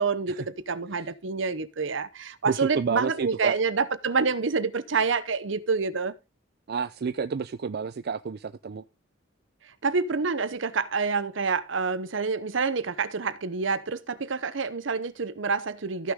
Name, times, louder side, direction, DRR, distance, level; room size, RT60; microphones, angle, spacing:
voice 1, 0.0-6.1 9.8-16.1, right 4 dB, 70° right, 0.8 m, -27 dB
voice 2, 2.5-3.6 6.7-8.8, right 5 dB, 55° right, 0.4 m, -30 dB
14.5 x 6.3 x 3.7 m
head